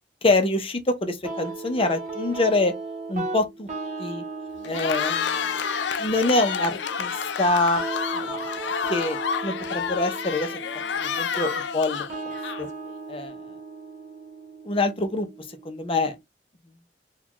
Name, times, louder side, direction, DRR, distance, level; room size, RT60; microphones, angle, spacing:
voice 1, 0.2-2.7 3.1-3.7 4.0-4.2 4.6-5.4 6.0-7.1 7.4-7.9 8.1-8.4 8.9-10.5 11.0-12.0 12.6-12.7 13.1-13.3 14.7-15.3 15.6-16.1, left 2 dB, 30° left, 0.6 m, -25 dB
sound 1, 1.2-16.2, right 3 dB, 40° right, 1.0 m, -37 dB
Cheering, 4.6-12.9, left 7 dB, 90° left, 0.5 m, -29 dB
4.0 x 2.3 x 2.9 m
head